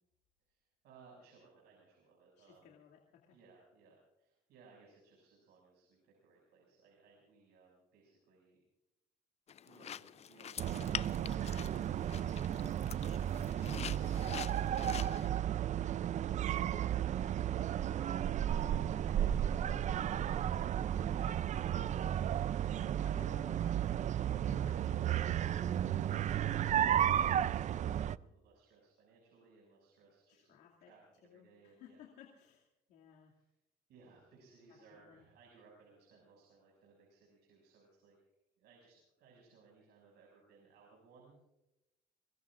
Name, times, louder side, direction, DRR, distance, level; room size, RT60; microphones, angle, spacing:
voice 1, 0.5-2.7 3.3-8.6 9.6-14.8 25.8-32.0 33.3-33.4 33.9-38.2 38.6-41.4, right 4 dB, 75° right, -2 dB, 6.6 m, -64 dB
voice 2, 2.4-3.4 15.7-15.9 17.9-18.0 19.9-21.5 23.0-25.6 30.3-30.9 31.2-33.3 34.9-35.3, left 8 dB, 90° left, -2 dB, 2.5 m, -60 dB
sound 1, 9.5-15.3, left 9 dB, 40° left, 0.5 m, -46 dB
sound 2, 10.6-28.2, right 10 dB, 45° right, 0.5 m, -33 dB
24.5 x 22.0 x 2.5 m, 0.90 s
cardioid pair, 110°, 17 cm